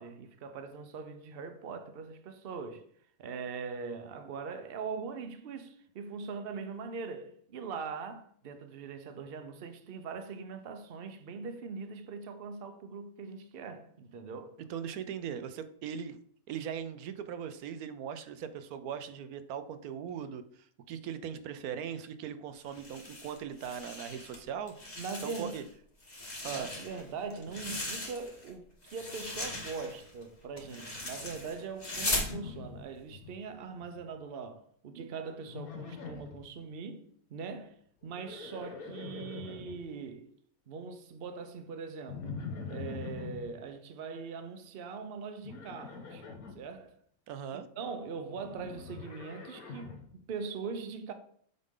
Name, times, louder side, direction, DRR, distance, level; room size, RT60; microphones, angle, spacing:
voice 1, 0.0-2.9 3.2-14.6 25.0-25.5 26.4-40.3 40.7-42.4 42.7-46.2 46.5-47.0 47.5-51.1, right 5 dB, 50° right, 0.8 m, -41 dB
voice 2, 14.7-16.2 16.5-24.8 25.2-25.6 26.4-26.7 47.3-47.7, right 8 dB, 85° right, 1.1 m, -39 dB
sound 1, 22.7-24.4 24.7-25.7 26.0-28.5 28.8-32.3, left 1 dB, 30° left, 1.6 m, -38 dB
Livestock farm animals working animals, 32.1-33.4 33.6-34.2 35.5-36.4 38.0-39.8 42.1-43.5 45.4-46.6 48.3-50.1, left 5 dB, 75° left, 1.4 m, -43 dB
7.8 x 5.1 x 3.7 m
omnidirectional pair, 1.5 m